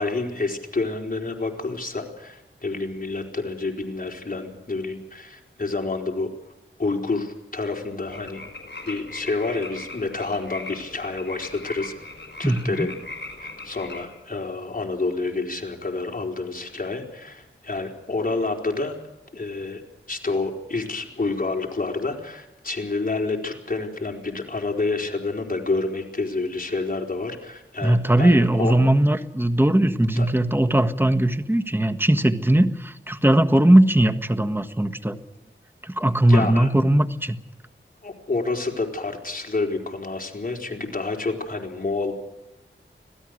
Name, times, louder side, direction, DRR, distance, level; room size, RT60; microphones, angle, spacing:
voice 1, 0.0-6.3 6.8-8.4 8.9-12.1 12.4-12.9 13.4-19.0 19.3-19.8 20.1-28.8 30.2-30.3 36.3-36.7 38.0-42.1, left 3 dB, 45° left, 2 dB, 4.3 m, -28 dB
sound 1, 8.1-14.1, left 2 dB, 60° left, 4.9 m, -39 dB
voice 2, 12.4-12.8 27.8-35.2 35.8-37.3, right 1 dB, 10° right, 7 dB, 1.5 m, -19 dB
26.0 x 17.0 x 6.5 m, 0.95 s
wide cardioid pair, 60°, 21 cm